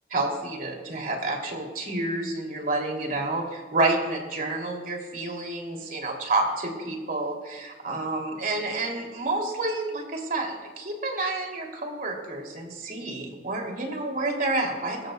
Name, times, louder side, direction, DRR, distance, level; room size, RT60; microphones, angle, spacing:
voice 1, 0.1-15.1, right 2 dB, 55° right, 1 dB, 2.8 m, -29 dB
23.0 x 14.0 x 2.3 m, 1.3 s
head